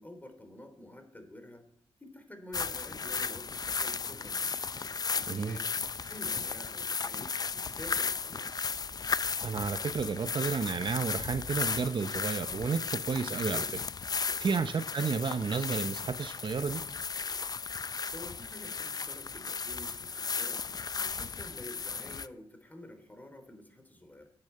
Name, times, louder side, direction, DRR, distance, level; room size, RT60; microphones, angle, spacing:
voice 1, 0.0-1.6 2.0-4.6 5.1-5.7 6.1-7.3 7.5-8.5 14.4-14.6 17.9-20.6 20.9-24.3, left 1 dB, 15° left, 7 dB, 3.1 m, -49 dB
sound 1, 2.5-22.3, left 5 dB, 35° left, 0.5 m, -35 dB
voice 2, 5.3-5.6 9.4-13.8 14.4-16.8, right 5 dB, 50° right, 10 dB, 0.8 m, -32 dB
10.5 x 9.0 x 8.7 m, 0.64 s
cardioid pair, 75°, 11 cm